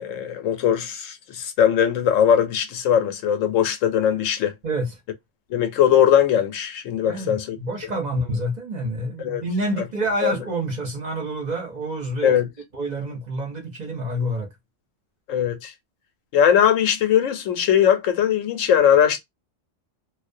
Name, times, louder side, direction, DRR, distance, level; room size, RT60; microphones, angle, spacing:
voice 1, 0.0-4.5 5.5-7.6 9.2-9.4 10.2-10.3 12.2-12.5 15.3-15.7 16.3-19.2, left 9 dB, 85° left, 1.0 m, -20 dB
voice 2, 4.6-4.9 7.0-12.3 12.7-14.5, right 1 dB, 45° right, 0.7 m, -28 dB
2.3 x 2.1 x 2.5 m
omnidirectional pair, 1.3 m